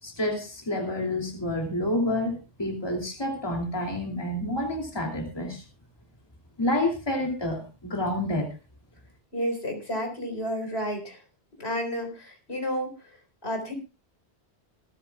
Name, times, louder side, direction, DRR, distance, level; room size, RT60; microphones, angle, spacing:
voice 1, 0.0-5.6 6.6-8.5, left 1 dB, 20° left, 1 dB, 2.9 m, -29 dB
voice 2, 9.3-11.2 11.6-13.2 13.4-13.7, equal, 70° left, 3 dB, 4.6 m, -31 dB
26.0 x 10.0 x 2.3 m, 0.29 s
omnidirectional pair, 1.1 m